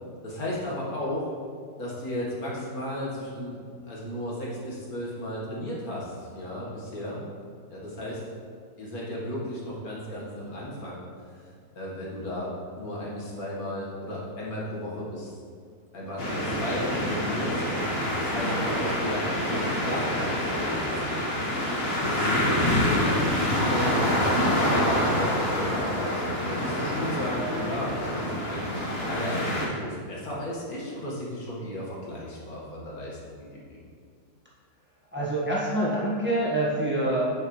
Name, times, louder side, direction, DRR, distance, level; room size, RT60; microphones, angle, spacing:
voice 1, 0.2-1.3 1.8-3.6 3.8-7.2 7.7-8.2 8.8-11.0 11.3-15.3 15.9-17.6 18.2-21.5 22.1-33.8, left 1 dB, 65° left, -5 dB, 2.1 m, -34 dB
sound 1, 16.2-29.7, left 1 dB, 40° left, 1.6 m, -27 dB
voice 2, 35.1-37.2, right 1 dB, 5° right, -6 dB, 1.2 m, -26 dB
10.5 x 5.7 x 3.2 m, 2.1 s
omnidirectional pair, 1.7 m